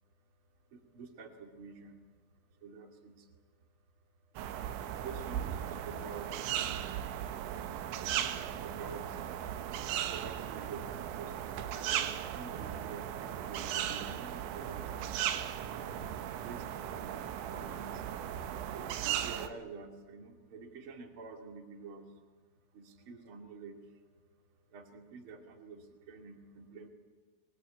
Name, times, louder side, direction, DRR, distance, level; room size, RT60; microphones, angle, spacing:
voice 1, 0.7-2.2 2.5-3.7 4.3-6.9 7.6-9.2 10.1-11.4 11.7-15.1 15.6-18.1 18.7-22.2 22.7-24.1 24.5-26.9, right 4 dB, 35° right, 5 dB, 2.9 m, -49 dB
sound 1, 4.4-19.5, right 10 dB, 90° right, 3.6 m, -37 dB
26.5 x 23.0 x 8.5 m, 1.3 s
omnidirectional pair, 5.1 m